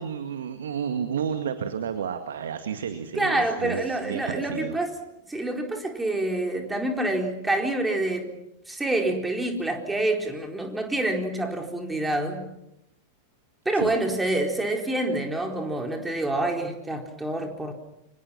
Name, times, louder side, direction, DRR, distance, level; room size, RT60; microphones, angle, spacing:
voice 1, 0.0-4.8 13.7-13.9, right 7 dB, 65° right, 8 dB, 1.9 m, -31 dB
voice 2, 3.2-4.9 5.3-8.3 8.7-12.4 13.6-17.7, right 2 dB, 10° right, 3 dB, 4.4 m, -27 dB
29.5 x 25.5 x 6.0 m, 0.85 s
figure-of-eight pair, 90°, 0 cm